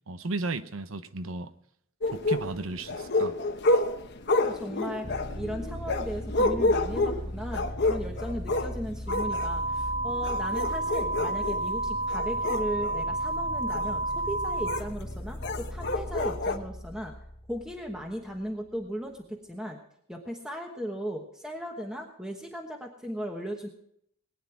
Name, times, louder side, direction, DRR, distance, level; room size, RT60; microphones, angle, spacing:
voice 1, 0.1-1.5 2.1-3.4, right 3 dB, 75° right, 12 dB, 0.9 m, -34 dB
sound 1, 2.0-8.7 9.1-9.5 10.1-11.6 12.1-13.0 13.7-13.9 14.7-14.8 15.4-16.6, left 2 dB, 55° left, 1.1 m, -29 dB
voice 2, 4.4-5.1 5.3-17.1 17.5-19.8 20.1-23.7, equal, 5° right, 1 dB, 1.2 m, -37 dB
sound 2, 5.0-18.5, equal, 25° left, 1.2 m, -39 dB
sound 3, 9.1-14.8, right 2 dB, 70° left, 0.7 m, -30 dB
20.0 x 9.7 x 4.7 m, 0.70 s
head